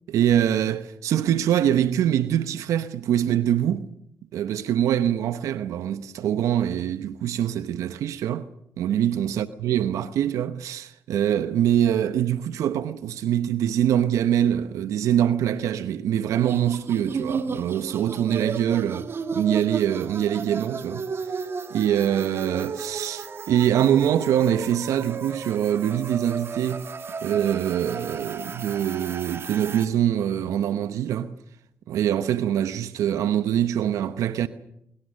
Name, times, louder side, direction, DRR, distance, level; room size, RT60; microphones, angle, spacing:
voice 1, 0.1-3.9 4.3-8.5 8.8-21.1 21.3-21.4 21.7-26.9 27.2-31.3 31.9-34.5, right 10 dB, 80° right, 0.9 m, -24 dB
sound 1, 16.3-29.9, right 5 dB, 50° right, 1.9 m, -34 dB
25.0 x 22.5 x 6.5 m
supercardioid pair, 55°, 5 cm